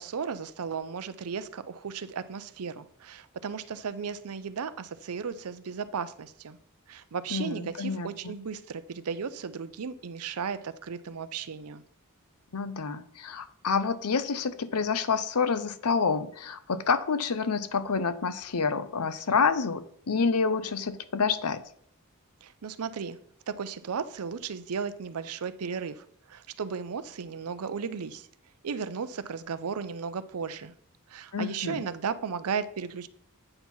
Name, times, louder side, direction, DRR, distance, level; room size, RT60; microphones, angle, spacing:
voice 1, 0.0-6.6 6.9-11.8 22.4-23.2 23.5-28.3 28.6-30.7 31.1-33.1, right 6 dB, 75° right, 14 dB, 0.5 m, -35 dB
voice 2, 7.3-8.3 12.5-21.6 31.3-31.8, left 5 dB, 85° left, 12 dB, 0.7 m, -28 dB
8.8 x 4.5 x 5.5 m, 0.63 s
head